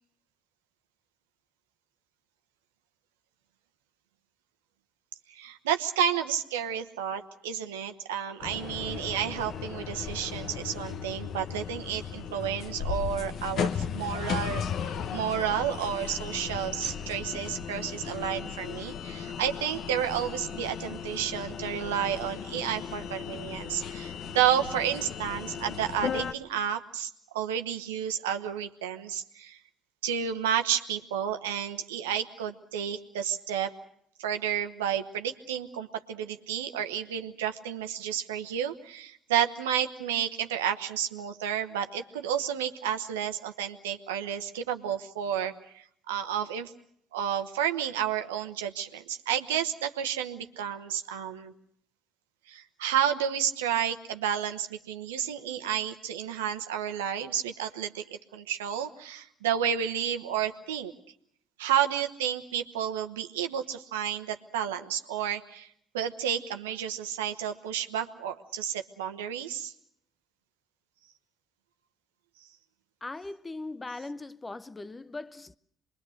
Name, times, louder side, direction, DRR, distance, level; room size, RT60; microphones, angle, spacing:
voice 1, 5.3-29.6 30.0-33.7 34.2-46.7 47.1-51.5 52.5-60.9 61.6-65.7 65.9-69.7, right 9 dB, 85° right, 1.1 m, -31 dB
sound 1, 8.4-26.3, left 7 dB, 60° left, 1.1 m, -36 dB
voice 2, 73.0-75.6, left 2 dB, 25° left, 0.8 m, -39 dB
25.5 x 22.0 x 6.5 m
hypercardioid pair, 55°, 0 cm